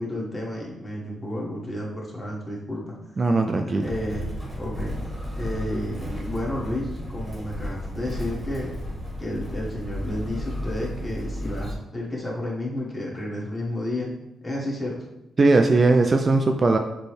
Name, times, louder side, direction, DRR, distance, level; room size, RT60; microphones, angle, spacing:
voice 1, 0.0-2.9 3.6-4.3 4.6-4.9 5.3-8.7 9.2-14.1 14.4-14.9, left 1 dB, 20° left, -5 dB, 1.5 m, -31 dB
voice 2, 3.2-3.9 15.4-16.8, right 3 dB, 35° right, 4 dB, 0.3 m, -19 dB
Motor vehicle (road), 3.8-11.7, equal, 15° right, 1.2 m, -33 dB
6.7 x 2.2 x 3.2 m, 0.93 s
cardioid pair, 90°, 0 cm